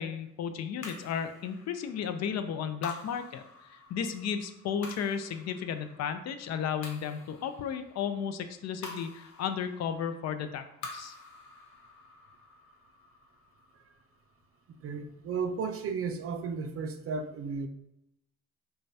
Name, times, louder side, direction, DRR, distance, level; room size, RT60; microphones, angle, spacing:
voice 1, 0.0-3.4 3.7-10.6 10.9-11.1, left 7 dB, 60° left, 9 dB, 0.4 m, -34 dB
sound 1, 0.8-15.3, left 3 dB, 85° left, 1.0 m, -50 dB
voice 2, 14.8-17.7, right 5 dB, 50° right, 7 dB, 0.5 m, -34 dB
5.1 x 2.3 x 2.7 m, 0.82 s
cardioid pair, 90°, 30 cm